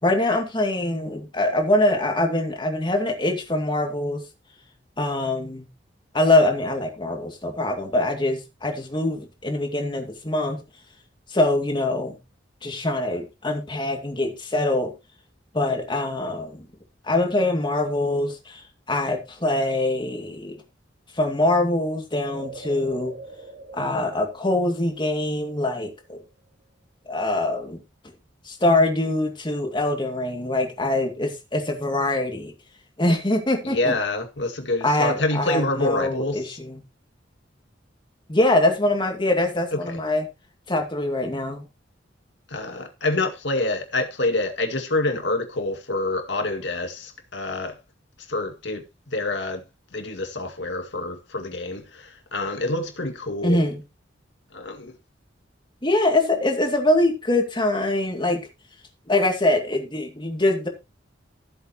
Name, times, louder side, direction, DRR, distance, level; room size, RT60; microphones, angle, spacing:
voice 1, 0.0-4.3 5.0-5.7 6.1-10.7 11.3-12.2 12.6-14.9 15.5-16.7 17.0-18.6 18.9-20.6 21.1-23.2 23.7-26.2 27.1-27.8 28.4-32.5 33.0-34.0 34.8-36.8 38.3-40.3 40.7-41.6 53.4-53.8 55.8-58.5 59.1-60.7, left 1 dB, 25° left, 2.3 m, -23 dB
sound 1, 22.3-26.0 26.3-26.4, right 3 dB, 60° right, 4.0 m, -42 dB
voice 2, 33.6-36.4 39.8-40.0 42.5-47.7 48.3-48.8 49.1-49.6 49.9-53.6 54.5-54.9, left 2 dB, 70° left, 2.2 m, -27 dB
15.0 x 7.9 x 3.0 m
head